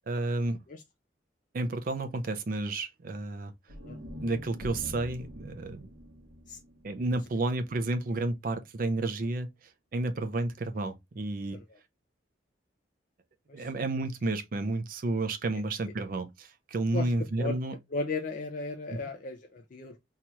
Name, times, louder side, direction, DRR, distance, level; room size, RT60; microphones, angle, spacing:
voice 1, 0.1-0.6 1.5-3.5 4.2-5.9 6.8-9.5 9.9-11.6 13.5-17.8 18.9-19.0, right 2 dB, 50° right, 0.4 m, -31 dB
sound 1, 3.7-7.9, equal, 80° right, 0.9 m, -45 dB
voice 2, 17.9-20.0, left 3 dB, 45° left, 0.4 m, -35 dB
2.9 x 2.3 x 2.9 m
head